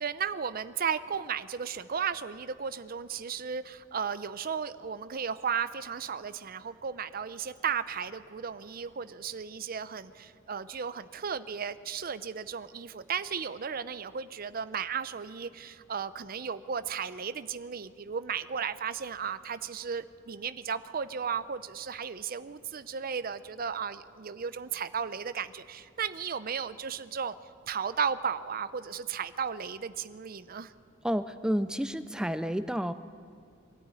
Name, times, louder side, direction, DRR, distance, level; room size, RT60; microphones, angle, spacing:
voice 1, 0.0-27.3 27.7-30.7, right 6 dB, 50° right, 13 dB, 0.6 m, -35 dB
voice 2, 31.0-32.9, equal, 5° right, 12 dB, 0.4 m, -30 dB
22.0 x 13.5 x 9.8 m, 2.4 s
head